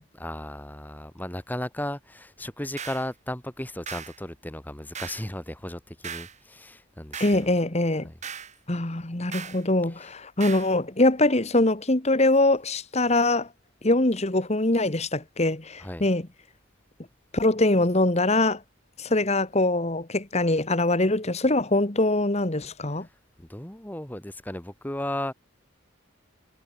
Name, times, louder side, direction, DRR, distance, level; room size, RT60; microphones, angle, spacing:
voice 1, 0.1-7.5 8.0-8.1 10.0-10.1 15.8-16.0 23.4-25.3, left 1 dB, 10° left, 1.6 m, -35 dB
sound 1, 2.8-3.1 3.9-4.2 4.9-5.3 6.0-6.4 7.1-7.5 8.2-8.5 9.3-9.6 10.4-10.7, right 7 dB, 35° right, 4.1 m, -38 dB
voice 2, 7.2-8.1 8.7-13.5 13.8-16.3 17.3-18.6 19.0-23.1, left 2 dB, 30° left, 1.5 m, -23 dB
head